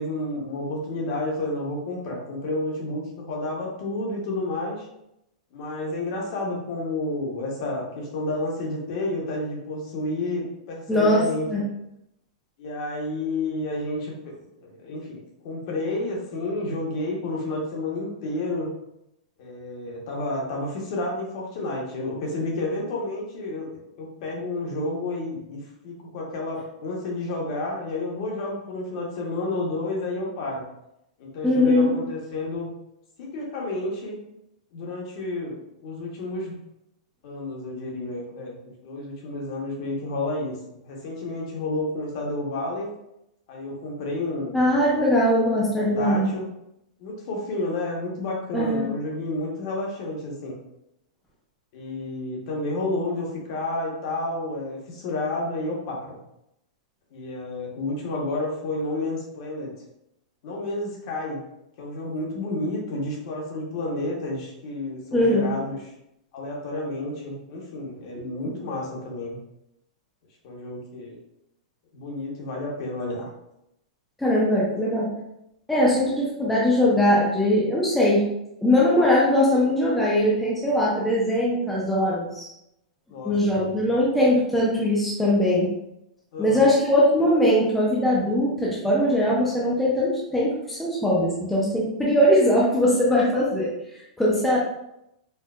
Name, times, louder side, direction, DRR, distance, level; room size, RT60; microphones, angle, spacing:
voice 1, 0.0-4.9 5.5-11.6 12.6-14.1 14.6-15.2 15.4-18.7 19.4-23.7 24.0-30.7 31.2-32.7 33.2-34.2 34.7-36.6 37.2-42.9 43.5-44.8 45.5-46.5 47.0-50.6 51.7-56.2 57.1-59.7 60.4-61.4 61.8-65.8 66.3-69.4 70.4-71.2 71.9-73.3 83.1-83.3 86.3-86.7 94.3-94.4, left 2 dB, 45° left, -1 dB, 0.9 m, -30 dB
voice 2, 10.9-11.6 31.4-31.9 44.5-46.3 48.5-48.9 65.1-65.5 68.1-68.6 74.2-75.1 75.7-78.2 78.6-82.5 83.2-85.7 86.4-93.7 94.2-94.6, left 1 dB, 5° left, -6 dB, 0.4 m, -21 dB
4.4 x 2.2 x 2.3 m, 0.83 s
supercardioid pair, 165°, 4 cm